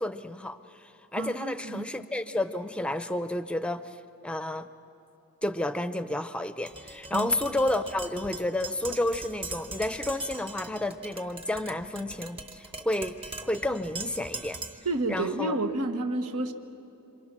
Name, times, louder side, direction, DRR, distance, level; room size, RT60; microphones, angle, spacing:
voice 1, 0.0-4.0 4.2-4.7 5.4-14.6 15.1-15.5, left 1 dB, 5° left, 11 dB, 0.6 m, -31 dB
voice 2, 1.1-1.9 7.1-7.3 14.8-16.5, right 2 dB, 85° right, 7 dB, 1.3 m, -30 dB
Tap, 6.7-14.9, right 2 dB, 25° right, 1.0 m, -41 dB
27.5 x 26.5 x 6.1 m, 2.8 s
head